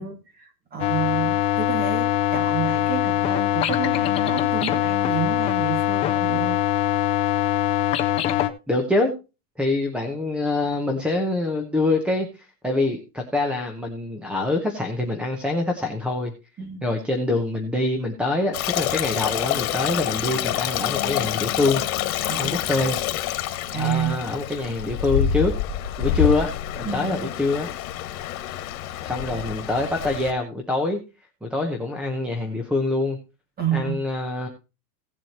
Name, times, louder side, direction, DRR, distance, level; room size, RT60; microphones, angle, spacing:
voice 1, 0.0-6.6 16.6-16.8 22.2-22.5 23.7-24.2 26.9-27.3 33.6-34.0, right 8 dB, 20° right, 6 dB, 2.2 m, -30 dB
sound 1, 0.8-8.5, left 13 dB, 15° left, 0.4 m, -22 dB
voice 2, 8.7-9.1 9.6-16.3 16.8-21.8 22.4-23.0 23.7-25.5 26.0-26.5 26.8-27.7 29.0-31.0 31.4-33.2 33.7-34.5, left 2 dB, ahead, 4 dB, 0.8 m, -25 dB
Stream, 18.5-30.3, left 11 dB, 60° left, 1.9 m, -27 dB
17.0 x 7.5 x 2.9 m, 0.29 s
supercardioid pair, 165°, 48 cm